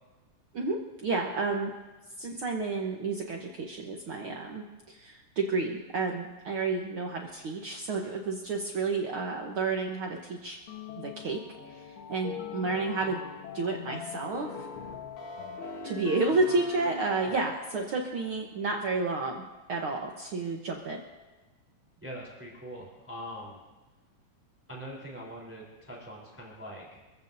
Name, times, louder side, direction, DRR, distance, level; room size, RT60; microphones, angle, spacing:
voice 1, 0.5-1.7 2.2-10.6 11.0-13.2 13.5-14.6 15.8-21.0, right 3 dB, 75° right, 0 dB, 1.2 m, -31 dB
sound 1, 10.7-18.0, left 5 dB, 55° left, 1.6 m, -41 dB
voice 2, 22.0-23.6 24.7-27.0, equal, 5° right, -3 dB, 3.2 m, -42 dB
26.0 x 15.0 x 2.7 m, 1.2 s
omnidirectional pair, 3.9 m